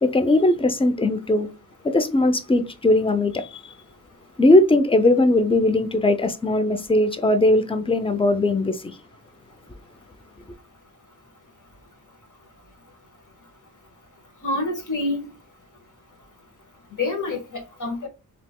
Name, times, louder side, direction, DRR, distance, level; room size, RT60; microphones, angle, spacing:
voice 1, 0.0-1.5 1.9-3.5 4.4-8.9, left 2 dB, 15° left, 0.5 m, -19 dB
voice 2, 14.4-15.2 17.0-18.1, left 2 dB, 50° left, 1.4 m, -27 dB
3.4 x 2.9 x 2.3 m
cardioid pair, 55°, 38 cm